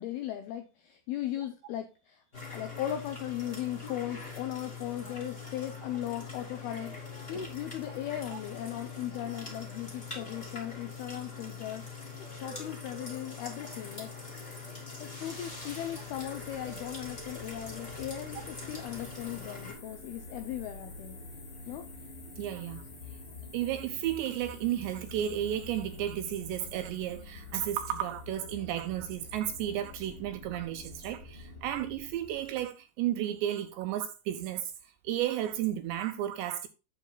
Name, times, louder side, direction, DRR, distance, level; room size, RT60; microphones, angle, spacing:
voice 1, 0.0-2.2 2.5-11.9 12.3-14.1 15.0-21.2 21.7-21.8, left 12 dB, 85° left, 2.2 m, -38 dB
sound 1, 2.3-19.7, left 4 dB, 25° left, 1.4 m, -43 dB
sound 2, 15.2-32.7, left 2 dB, 65° left, 0.6 m, -48 dB
sound 3, 18.9-28.5, left 4 dB, 45° left, 2.0 m, -55 dB
voice 2, 22.4-22.8 23.5-34.7 35.0-36.7, right 11 dB, 80° right, 2.6 m, -33 dB
9.2 x 8.1 x 2.3 m
omnidirectional pair, 5.4 m